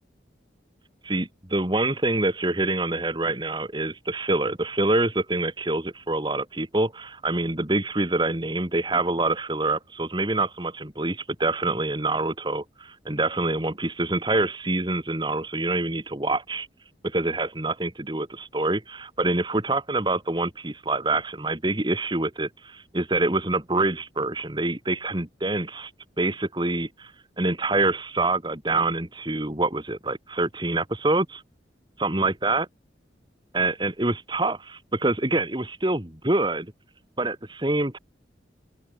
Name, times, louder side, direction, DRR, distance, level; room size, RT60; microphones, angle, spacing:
voice 1, 1.0-16.7 17.0-25.9 26.2-31.4 32.0-32.7 33.5-36.7 37.2-38.0, right 2 dB, 25° right, 2.1 m, -26 dB
open air
head